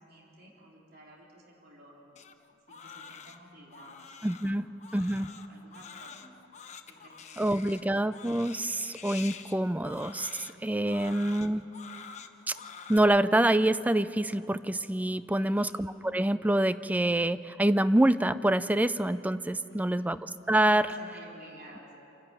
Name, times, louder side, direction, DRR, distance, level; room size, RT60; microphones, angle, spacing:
voice 1, 0.0-2.2 2.7-6.4 6.9-7.8 15.3-15.7 19.7-20.2 20.7-22.0, right 1 dB, 50° right, -3 dB, 3.6 m, -53 dB
Crying sobbing, 2.2-13.0, left 6 dB, 35° left, 0.9 m, -47 dB
voice 2, 4.2-5.3 7.4-10.3 10.6-11.6 12.5-12.6 12.9-20.2 20.5-20.8, right 1 dB, 10° right, 14 dB, 0.4 m, -26 dB
28.0 x 11.5 x 8.9 m, 2.9 s
head